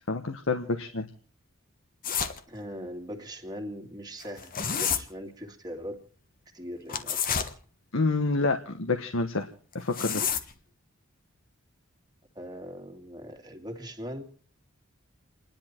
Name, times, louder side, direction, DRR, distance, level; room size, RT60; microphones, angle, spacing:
voice 1, 0.1-1.1 7.9-9.5 9.7-10.3, left 3 dB, 70° left, 6 dB, 1.2 m, -28 dB
sound 1, 2.0-2.4 4.2-5.0 6.9-7.5 9.7-10.5, left 7 dB, 45° left, 1.3 m, -29 dB
voice 2, 2.5-6.0 6.5-7.4 12.4-14.2, equal, 20° right, 3 dB, 2.3 m, -40 dB
29.0 x 10.5 x 4.4 m, 0.42 s
head